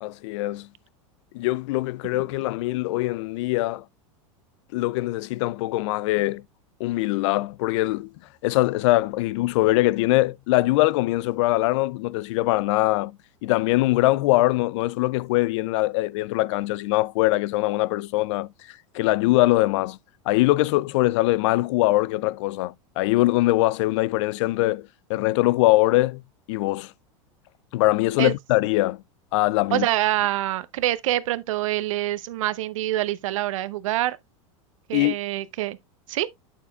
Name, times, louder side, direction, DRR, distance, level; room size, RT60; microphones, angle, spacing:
voice 1, 0.0-0.7 1.3-3.8 4.7-6.4 6.8-8.1 8.4-20.0 20.3-26.2 26.5-26.9 27.7-29.0 29.3-29.9 34.9-35.1, left 18 dB, 65° left, 0.4 m, -22 dB
voice 2, 29.7-34.2 34.9-35.8 36.1-36.3, right 15 dB, 75° right, 0.7 m, -25 dB
8.5 x 6.9 x 2.3 m
hypercardioid pair, 110°, 17 cm